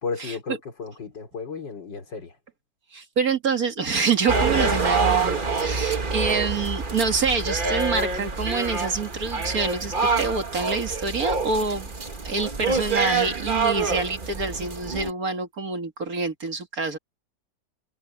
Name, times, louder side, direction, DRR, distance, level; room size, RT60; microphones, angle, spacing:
voice 1, 0.0-2.3, left 5 dB, 65° left, 4.1 m, -33 dB
voice 2, 2.9-11.9 12.2-17.0, right 4 dB, 50° right, 2.2 m, -26 dB
sound 1, 4.3-15.1, right 4 dB, 30° right, 1.6 m, -26 dB
omnidirectional pair, 2.1 m